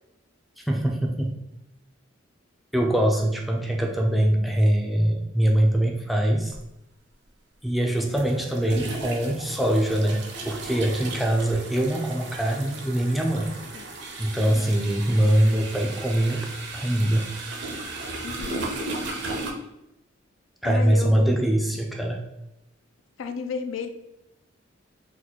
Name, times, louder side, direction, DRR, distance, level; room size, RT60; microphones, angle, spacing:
voice 1, 0.6-1.3 2.7-6.5 7.6-13.5 14.2-16.5 16.7-17.4 20.6-22.2, right 1 dB, ahead, 0 dB, 0.3 m, -23 dB
sound 1, 6.5-6.6 8.0-19.5, right 2 dB, 60° right, 0.5 m, -36 dB
voice 2, 14.4-14.7 18.2-18.6 20.6-21.5 23.2-23.9, left 5 dB, 80° left, 7 dB, 0.4 m, -33 dB
3.0 x 2.2 x 4.0 m, 0.87 s
head